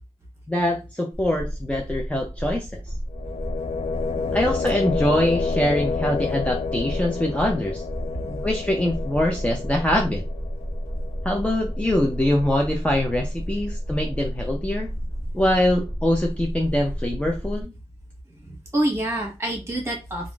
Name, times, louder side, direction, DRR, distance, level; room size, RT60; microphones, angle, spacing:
voice 1, 0.5-2.8 4.3-7.8 8.4-10.2 11.2-14.9 15.3-17.7, left 1 dB, 10° left, 0 dB, 0.5 m, -23 dB
sound 1, 1.1-17.6, equal, 30° left, 1.2 m, -32 dB
sound 2, 3.1-13.0, left 5 dB, 70° left, 0.4 m, -30 dB
voice 2, 8.1-8.4 18.4-20.3, right 1 dB, 25° right, 0 dB, 1.2 m, -28 dB
3.5 x 2.4 x 2.3 m, 0.27 s
wide cardioid pair, 105°, 11 cm